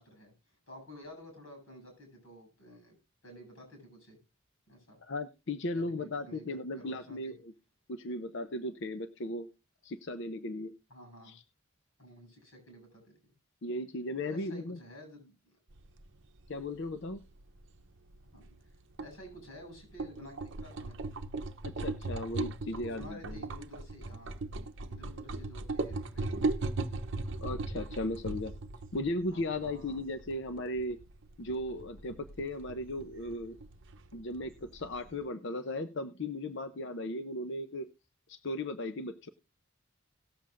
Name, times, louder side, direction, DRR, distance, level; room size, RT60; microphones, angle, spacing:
voice 1, 0.0-3.0 3.2-4.2 4.7-5.0 5.7-7.4 10.9-11.4 12.0-13.1 14.2-15.5 18.3-18.7 19.0-21.0 22.7-24.4 24.9-26.5 29.3-30.0, equal, 80° left, 3 dB, 7.2 m, -51 dB
voice 2, 5.0-7.5 7.9-9.5 9.8-10.7 11.2-11.4 13.6-14.8 16.5-17.2 21.6-23.4 27.4-28.5 28.9-31.0 31.4-33.6 34.1-37.9 38.3-39.3, left 1 dB, 60° left, 9 dB, 0.7 m, -36 dB
sound 1, 15.7-35.2, right 3 dB, 60° right, 0.7 m, -39 dB
18.5 x 7.5 x 2.5 m, 0.29 s
head